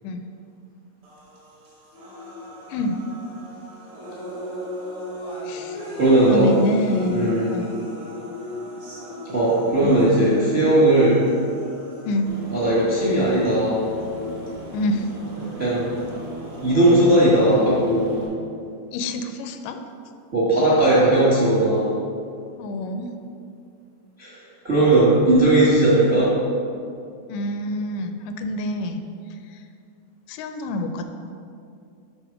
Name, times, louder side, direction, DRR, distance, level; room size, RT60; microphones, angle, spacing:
sound 1, 1.0-17.0, left 2 dB, 45° right, 1.1 m, -37 dB
voice 1, 2.7-3.0 5.4-5.8 6.3-7.7 9.8-10.0 12.0-12.3 14.7-15.1 18.9-19.8 22.6-23.1 27.3-29.0 29.3-29.7 30.3-31.0, left 1 dB, 80° left, 7 dB, 2.0 m, -27 dB
voice 2, 5.9-6.5 7.1-7.6 9.3-11.2 12.5-13.8 15.6-16.0 16.6-18.2 20.3-21.9 24.2-24.4 24.6-26.3, right 1 dB, 65° right, -8 dB, 0.6 m, -17 dB
Aircraft, 12.3-18.3, right 2 dB, 85° right, 3.1 m, -39 dB
7.0 x 4.3 x 5.8 m, 2.5 s
omnidirectional pair, 3.7 m